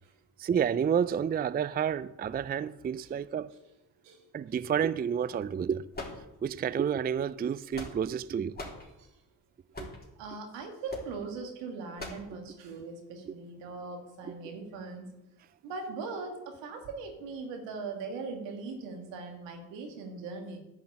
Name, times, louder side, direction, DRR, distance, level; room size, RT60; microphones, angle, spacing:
voice 1, 0.4-3.5 4.3-5.8 6.4-8.6 9.8-9.9 13.3-13.4, right 8 dB, 25° right, 0.4 m, -30 dB
sound 1, 5.9-6.7 7.4-8.2 8.6-8.9 9.7-10.1 10.9-11.1 12.0-12.3, left 2 dB, 20° left, 3.7 m, -41 dB
voice 2, 9.9-15.1 15.6-20.6, right 4 dB, 85° right, 2.1 m, -40 dB
10.5 x 5.9 x 8.6 m
supercardioid pair, 50°, 42 cm